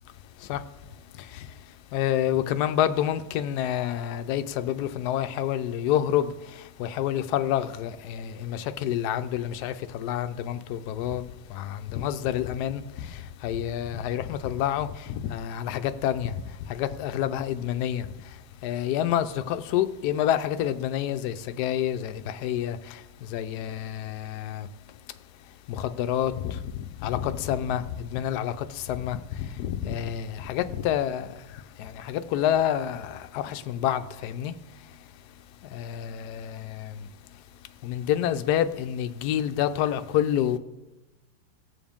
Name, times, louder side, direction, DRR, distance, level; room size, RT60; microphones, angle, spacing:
voice 1, 1.9-6.3 6.8-11.2 11.5-12.8 13.4-16.3 16.7-18.1 18.6-22.8 23.3-24.7 25.7-26.6 27.0-31.3 31.8-34.5 35.7-36.9 37.8-40.6, left 10 dB, 75° left, 1.1 m, -28 dB
18.0 x 7.1 x 3.5 m
omnidirectional pair, 1.9 m